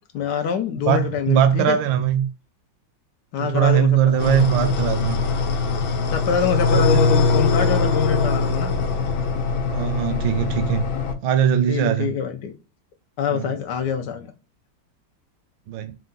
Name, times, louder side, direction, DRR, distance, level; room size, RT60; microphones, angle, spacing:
voice 1, 0.1-1.8 3.3-4.5 6.1-8.7 11.7-12.5 13.2-14.3, left 8 dB, 70° left, 1.1 m, -25 dB
voice 2, 0.9-2.3 3.4-5.2 6.7-7.0 9.7-10.8 11.2-12.1 13.3-13.5 15.7-15.9, right 10 dB, 80° right, 1.3 m, -20 dB
sound 1, 4.2-11.1, left 4 dB, 90° left, 1.5 m, -22 dB
4.6 x 2.2 x 3.8 m
omnidirectional pair, 2.1 m